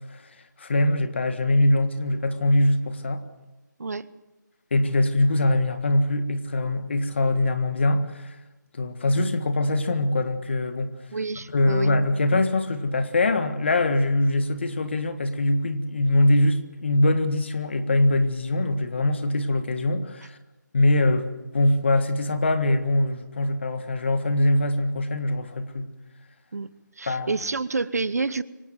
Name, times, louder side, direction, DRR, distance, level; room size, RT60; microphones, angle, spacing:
voice 1, 0.6-3.2 4.7-8.4 8.7-10.9 11.5-20.4 20.7-25.8 27.1-27.3, left 2 dB, 35° left, 10 dB, 1.6 m, -23 dB
voice 2, 11.1-11.9 26.5-28.4, right 4 dB, 55° right, 16 dB, 1.0 m, -29 dB
24.5 x 18.0 x 7.9 m, 1.1 s
figure-of-eight pair, 175°, 10 cm